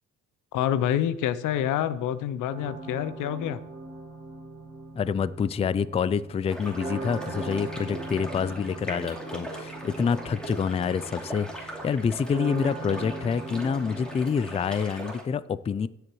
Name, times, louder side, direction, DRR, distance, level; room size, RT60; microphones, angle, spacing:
voice 1, 0.5-3.6, left 10 dB, 85° left, 15 dB, 0.6 m, -27 dB
sound 1, 2.5-14.8, right 2 dB, 20° right, 2.9 m, -40 dB
voice 2, 5.0-15.9, left 6 dB, 20° left, 18 dB, 0.3 m, -27 dB
sound 2, 6.5-15.2, right 1 dB, 5° left, 2.7 m, -40 dB
16.5 x 8.0 x 3.1 m, 0.84 s
cardioid pair, 90°, 30 cm